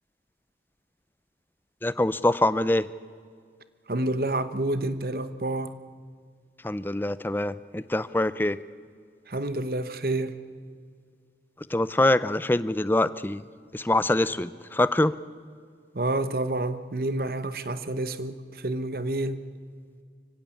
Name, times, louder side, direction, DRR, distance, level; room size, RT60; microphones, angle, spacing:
voice 1, 1.8-2.9 6.6-8.6 11.7-13.4 13.7-15.2, left 1 dB, 10° left, 16 dB, 0.5 m, -24 dB
voice 2, 3.9-5.7 9.3-10.4 15.9-19.4, right 2 dB, 55° right, 12 dB, 1.1 m, -29 dB
24.5 x 16.0 x 8.6 m, 2.1 s
head